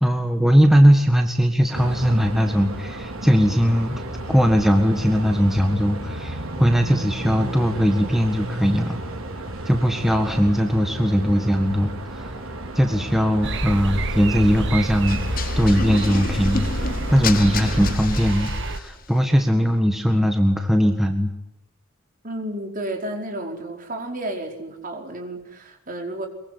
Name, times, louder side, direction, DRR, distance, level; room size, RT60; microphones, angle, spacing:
voice 1, 0.0-4.0 4.3-9.0 9.7-12.2 12.8-15.2 15.6-16.7 17.1-21.3, equal, ahead, 4 dB, 1.7 m, -19 dB
sound 1, 1.7-18.0, right 1 dB, 85° right, 4.7 m, -33 dB
sound 2, 13.4-18.8, right 1 dB, 60° right, 1.7 m, -28 dB
sound 3, 15.1-19.0, left 5 dB, 45° left, 1.1 m, -31 dB
voice 2, 22.2-26.3, right 1 dB, 40° right, 3 dB, 4.8 m, -32 dB
23.5 x 23.0 x 9.7 m, 0.88 s
head